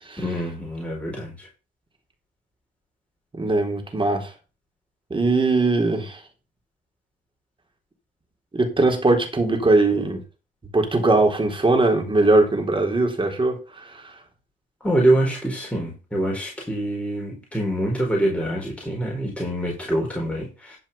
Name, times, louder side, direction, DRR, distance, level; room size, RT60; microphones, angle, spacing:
voice 1, 0.2-1.5 14.8-20.8, right 1 dB, 5° left, 4.7 m, -25 dB
voice 2, 3.3-4.3 5.1-6.2 8.5-10.2 10.7-14.1, right 2 dB, 25° right, 3.7 m, -20 dB
12.0 x 5.5 x 5.7 m
cardioid pair, 90°, 20 cm